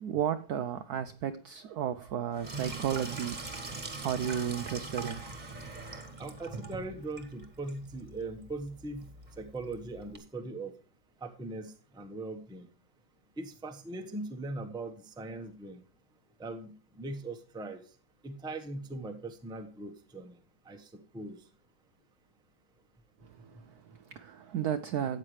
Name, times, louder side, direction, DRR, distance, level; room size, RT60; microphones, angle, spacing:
voice 1, 0.0-3.4 4.0-5.6 23.2-25.2, right 9 dB, 90° right, 0.8 m, -34 dB
Sink (filling or washing), 2.3-10.2, right 3 dB, 25° right, 1.2 m, -42 dB
voice 2, 6.2-9.1 9.4-10.7 11.2-12.7 13.4-15.8 16.4-17.8 18.2-20.3 20.7-21.4, right 2 dB, 5° right, 0.5 m, -40 dB
13.0 x 8.8 x 3.2 m
omnidirectional pair, 2.3 m